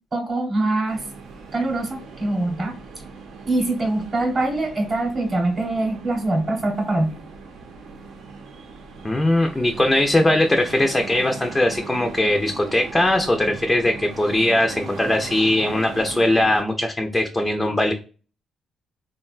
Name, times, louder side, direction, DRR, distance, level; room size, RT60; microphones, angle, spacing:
voice 1, 0.1-1.0 1.5-2.7 3.4-7.2, right 2 dB, 35° right, 1 dB, 0.8 m, -23 dB
sound 1, 0.9-16.6, right 4 dB, 90° right, 0.7 m, -39 dB
voice 2, 9.0-17.9, left 1 dB, 15° left, 4 dB, 0.4 m, -20 dB
3.6 x 2.1 x 2.3 m, 0.36 s
cardioid pair, 120°, 0 cm